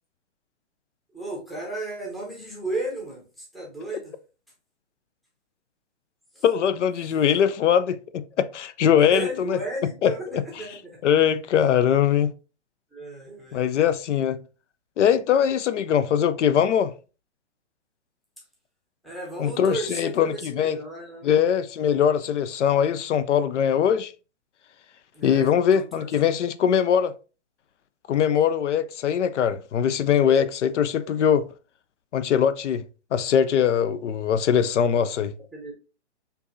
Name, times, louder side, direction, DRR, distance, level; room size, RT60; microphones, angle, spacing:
voice 1, 1.1-4.1 6.3-6.4 9.0-11.0 12.9-13.7 19.0-21.4 25.1-26.4 35.5-35.7, right 2 dB, ahead, 0.6 m, -34 dB
voice 2, 6.4-9.6 10.0-10.6 11.0-12.3 13.5-14.4 15.0-16.9 19.4-20.8 21.2-24.1 25.2-27.1 28.1-31.5 32.1-32.8 33.1-35.3, left 8 dB, 85° left, 0.5 m, -21 dB
4.5 x 2.6 x 2.6 m
hypercardioid pair, 145°, 35 cm